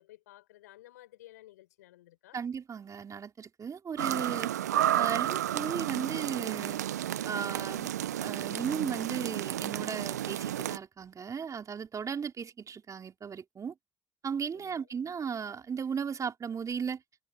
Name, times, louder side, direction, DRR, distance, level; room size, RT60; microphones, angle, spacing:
voice 1, 0.0-2.4 14.5-14.9, left 16 dB, 80° left, 6.4 m, -55 dB
voice 2, 2.3-4.5 5.0-6.8 7.2-7.9 8.2-13.7 14.2-17.0, right 6 dB, 40° right, 4.0 m, -36 dB
sound 1, 4.0-10.8, right 12 dB, 85° right, 0.5 m, -32 dB
hypercardioid pair, 55°, 9 cm